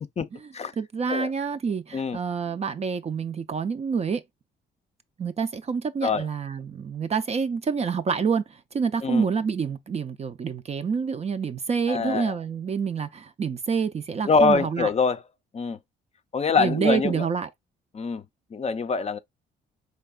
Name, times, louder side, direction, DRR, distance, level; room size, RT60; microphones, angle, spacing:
voice 1, 0.8-4.2 5.2-14.9 16.6-17.5, right 6 dB, 35° right, 0.4 m, -27 dB
voice 2, 11.9-12.3 14.3-15.2 15.5-15.8 16.3-17.3 17.9-18.2 18.5-19.2, left 4 dB, 35° left, 0.5 m, -24 dB
4.5 x 3.3 x 2.2 m
cardioid pair, 90°, 20 cm